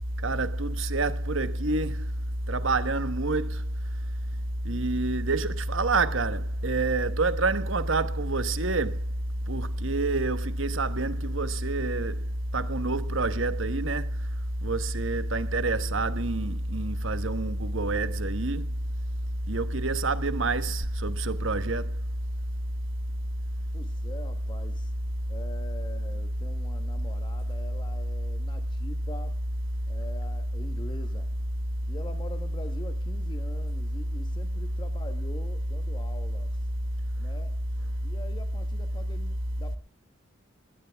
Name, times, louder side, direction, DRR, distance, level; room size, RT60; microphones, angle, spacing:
voice 1, 0.2-2.1 2.5-3.6 4.6-9.0 9.5-12.2 12.5-14.1 14.6-18.7 19.5-21.9, right 2 dB, 70° right, 1.2 m, -27 dB
voice 2, 23.7-24.9 25.3-29.4 29.9-31.3 31.9-36.5 37.2-37.5 38.0-39.8, left 1 dB, 25° left, 1.2 m, -44 dB
19.5 x 17.0 x 3.5 m
head